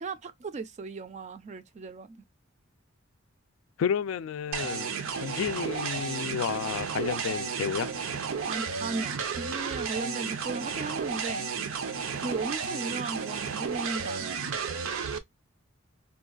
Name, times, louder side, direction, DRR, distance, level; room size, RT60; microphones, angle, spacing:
voice 1, 0.0-2.2 8.5-11.5 12.2-14.5, right 3 dB, 35° right, 0.4 m, -36 dB
voice 2, 3.8-7.9, left 7 dB, 70° left, 0.3 m, -31 dB
sound 1, 4.5-15.2, right 6 dB, 85° right, 0.5 m, -33 dB
3.6 x 2.3 x 2.3 m
head